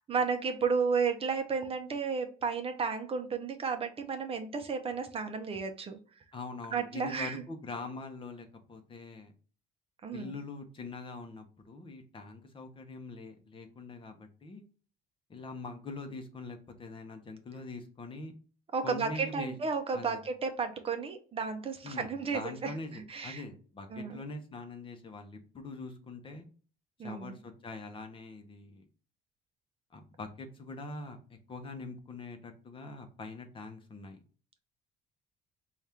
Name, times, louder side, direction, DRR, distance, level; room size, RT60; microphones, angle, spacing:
voice 1, 0.0-6.0 6.7-7.4 10.0-10.3 18.7-23.4 23.9-24.2 27.0-27.3, right 5 dB, 35° right, 7 dB, 0.6 m, -33 dB
voice 2, 6.3-9.3 10.1-14.6 15.3-18.3 18.8-19.6 19.9-20.2 21.8-26.5 27.0-28.8 29.9-34.2, left 3 dB, 30° left, 6 dB, 0.7 m, -43 dB
4.2 x 2.4 x 3.4 m, 0.39 s
cardioid pair, 110°, 17 cm